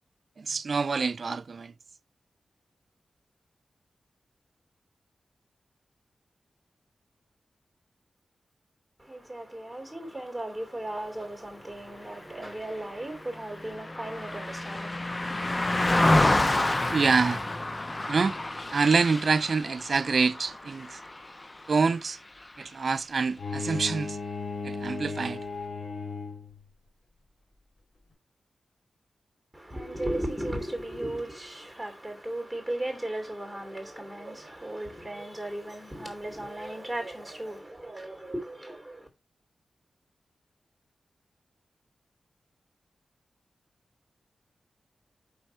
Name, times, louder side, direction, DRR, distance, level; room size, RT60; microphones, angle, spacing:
voice 1, 0.4-1.7 16.9-17.4 18.1-18.4 18.7-21.0 21.7-22.2 22.6-24.2 24.6-25.4, right 4 dB, 65° right, 0.3 m, -26 dB
voice 2, 9.0-15.2 29.5-39.1, right 1 dB, ahead, 2.9 m, -36 dB
Car passing by, 12.5-22.0 22.4-22.6, left 2 dB, 30° left, 0.6 m, -28 dB
Bowed string instrument, 23.4-26.6, left 4 dB, 65° left, 3.0 m, -35 dB
5.5 x 4.4 x 4.3 m
cardioid pair, 50°, 0 cm